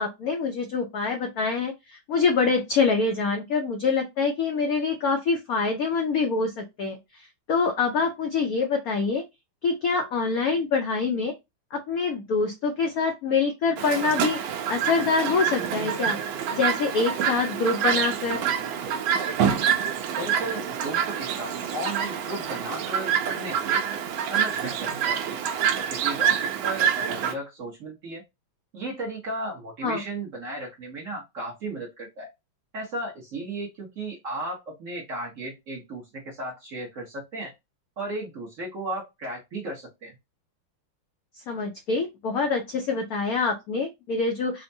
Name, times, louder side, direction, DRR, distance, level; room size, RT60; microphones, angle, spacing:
voice 1, 0.0-7.0 7.5-9.2 9.6-11.3 11.7-14.4 14.7-16.2 16.5-18.4 29.8-30.0 41.5-44.6, left 4 dB, 75° left, 3 dB, 0.8 m, -25 dB
Chirp tweet, 13.8-27.3, right 8 dB, 80° right, 1.4 m, -26 dB
voice 2, 20.1-23.8 24.2-25.4 25.7-28.2 28.7-32.3 32.7-37.5 38.0-40.1, right 2 dB, 50° right, -2 dB, 1.0 m, -35 dB
4.3 x 2.1 x 2.6 m, 0.21 s
omnidirectional pair, 2.2 m